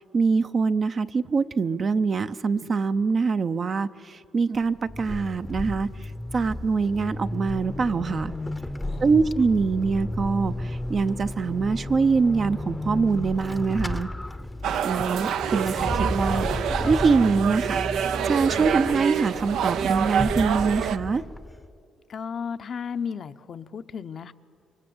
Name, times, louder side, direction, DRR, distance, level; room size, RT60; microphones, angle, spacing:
voice 1, 0.0-8.3 9.0-14.1 14.8-16.5 16.9-17.8 18.2-21.2, right 4 dB, 45° right, 9 dB, 0.7 m, -24 dB
Vehicle / Accelerating revving vroom / Squeak, 4.6-21.8, left 1 dB, 10° left, 0.8 m, -33 dB
voice 2, 8.8-9.3 22.1-24.3, left 6 dB, 55° left, 10 dB, 0.8 m, -34 dB
sound 1, 14.6-21.0, right 8 dB, 80° right, 0.7 m, -27 dB
28.0 x 23.5 x 7.9 m, 2.5 s
cardioid pair, 90°, 0 cm